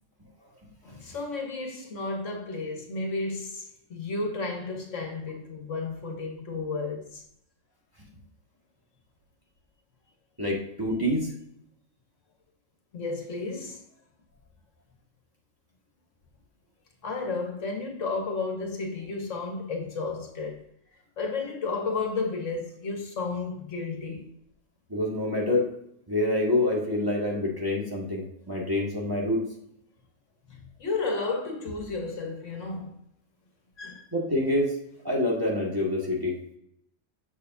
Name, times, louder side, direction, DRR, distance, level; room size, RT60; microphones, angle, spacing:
voice 1, 0.8-7.2 12.9-13.8 17.0-20.6 21.2-24.3 28.6-28.7 30.5-33.0 33.8-34.0, left 3 dB, 70° left, 1.6 m, -32 dB
voice 2, 10.4-11.3 24.9-25.6 26.1-29.4 34.1-34.7 35.0-36.3, left 1 dB, 15° right, 1.9 m, -26 dB
7.2 x 6.7 x 2.6 m
omnidirectional pair, 1.3 m